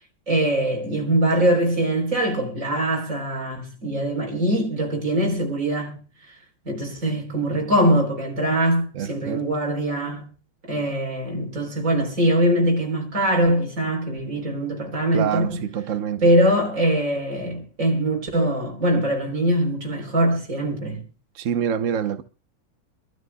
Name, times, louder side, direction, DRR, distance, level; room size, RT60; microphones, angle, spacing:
voice 1, 0.3-6.0 6.7-10.3 10.6-15.5 16.2-21.0, right 1 dB, 40° right, 4.0 m, -22 dB
voice 2, 8.9-9.5 15.1-16.3 21.3-22.2, right 8 dB, 70° right, 0.7 m, -26 dB
26.5 x 12.5 x 2.2 m
omnidirectional pair, 2.3 m